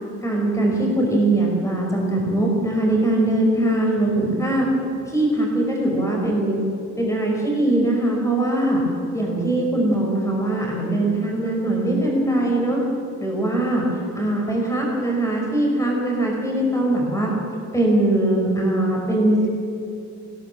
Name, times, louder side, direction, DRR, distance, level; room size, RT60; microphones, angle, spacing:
voice 1, 0.2-4.7 5.0-6.6 7.0-8.8 9.1-12.8 13.2-13.9 14.2-17.3 17.7-19.5, right 1 dB, 10° left, -1 dB, 5.3 m, -21 dB
21.5 x 17.0 x 7.3 m, 2.6 s
cardioid pair, 145°, 30 cm